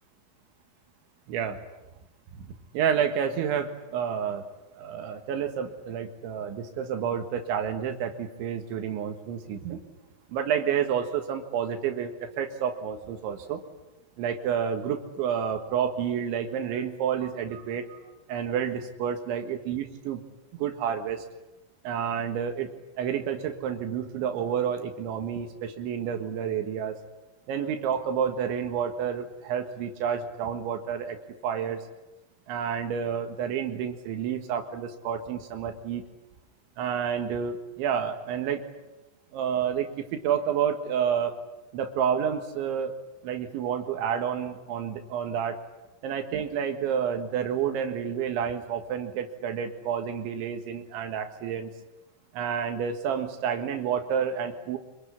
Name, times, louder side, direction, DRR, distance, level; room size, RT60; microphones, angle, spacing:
voice 1, 1.3-1.6 2.5-4.5 4.7-9.8 10.3-13.6 14.2-18.0 18.3-20.2 20.6-21.3 21.8-27.0 27.5-31.2 31.4-31.8 32.5-36.0 36.8-38.6 39.3-41.4 41.7-42.9 43.2-45.6 46.0-51.7 52.3-54.8, right 8 dB, 85° right, 5 dB, 4.0 m, -29 dB
26.0 x 23.0 x 9.8 m, 1.0 s
omnidirectional pair, 5.3 m